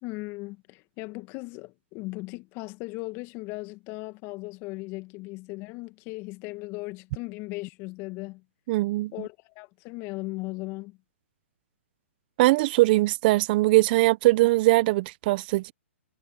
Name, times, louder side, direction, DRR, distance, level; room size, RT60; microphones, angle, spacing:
voice 1, 0.0-8.4 9.1-11.0, left 23 dB, 35° left, 2.3 m, -37 dB
voice 2, 8.7-9.1 12.4-15.7, right 20 dB, 45° right, 1.2 m, -21 dB
hypercardioid pair, 130°, 7 cm